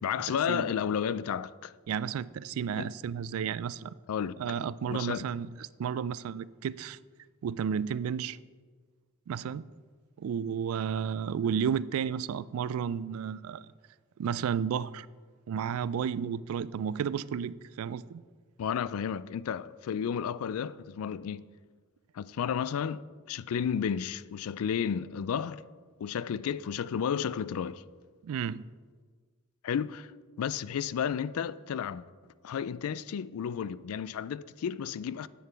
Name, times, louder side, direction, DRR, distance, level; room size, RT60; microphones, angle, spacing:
voice 1, 0.0-1.7 2.8-2.9 4.1-4.4 4.9-5.3 18.6-21.4 22.1-25.6 26.0-27.8 29.6-30.1 30.4-32.1 32.4-35.3, left 8 dB, 75° left, 0.3 m, -32 dB
voice 2, 1.9-3.9 4.4-7.0 7.4-8.4 9.3-9.6 10.2-13.7 14.2-15.1 15.5-18.2 28.2-28.6, right 7 dB, 70° right, 0.3 m, -32 dB
9.6 x 8.0 x 4.6 m
head